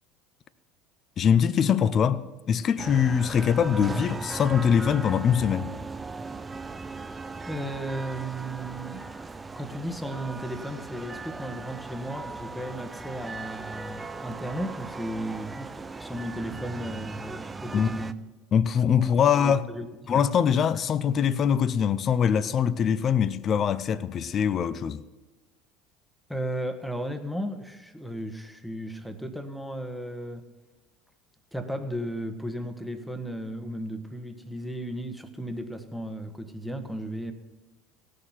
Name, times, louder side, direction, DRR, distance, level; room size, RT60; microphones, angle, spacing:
voice 1, 1.2-5.7 17.7-17.9 18.5-19.6 20.1-25.0, left 8 dB, 40° left, 0.6 m, -23 dB
sound 1, 2.8-18.1, right 3 dB, 20° right, 0.6 m, -38 dB
voice 2, 7.4-9.1 9.5-18.1 19.0-20.3 26.3-30.5 31.5-37.3, right 1 dB, ahead, 1.3 m, -35 dB
17.0 x 6.7 x 5.7 m
hypercardioid pair, 75°, 0 cm